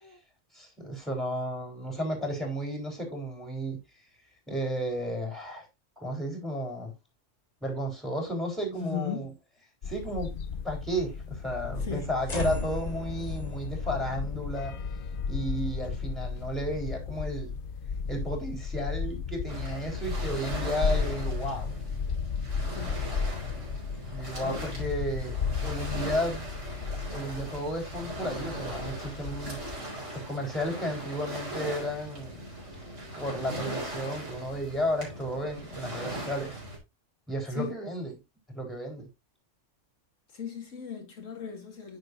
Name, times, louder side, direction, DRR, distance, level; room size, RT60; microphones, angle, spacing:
voice 1, 0.5-3.8 4.5-5.7 6.0-6.9 7.6-9.3 9.8-10.3 10.6-14.8 15.3-17.5 18.1-21.7 24.1-26.5 27.1-29.6 30.1-32.4 33.2-36.6 37.3-38.2 38.5-39.1, equal, ahead, 3.8 m, -33 dB
voice 2, 8.7-9.2 11.8-12.1 22.7-23.1 24.4-24.6 37.6-37.7 40.3-42.0, left 8 dB, 80° left, 2.2 m, -37 dB
sound 1, 9.8-29.8, left 6 dB, 50° left, 0.8 m, -34 dB
sound 2, 12.3-18.6, left 2 dB, 35° left, 1.6 m, -39 dB
Waves surf, 19.5-36.8, right 1 dB, 70° right, 4.3 m, -39 dB
9.7 x 6.8 x 2.5 m
omnidirectional pair, 1.3 m